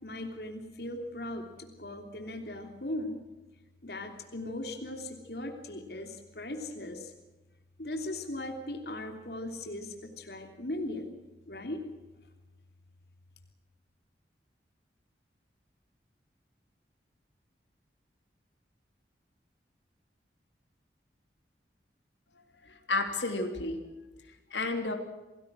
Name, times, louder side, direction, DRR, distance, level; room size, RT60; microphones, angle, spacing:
voice 1, 0.0-3.2 3.8-7.1 7.8-11.2 11.4-11.8, left 1 dB, 65° left, 4 dB, 3.2 m, -38 dB
voice 2, 22.7-23.8 24.5-24.9, left 2 dB, 90° left, 5 dB, 3.3 m, -31 dB
28.0 x 19.5 x 6.2 m, 1.1 s
head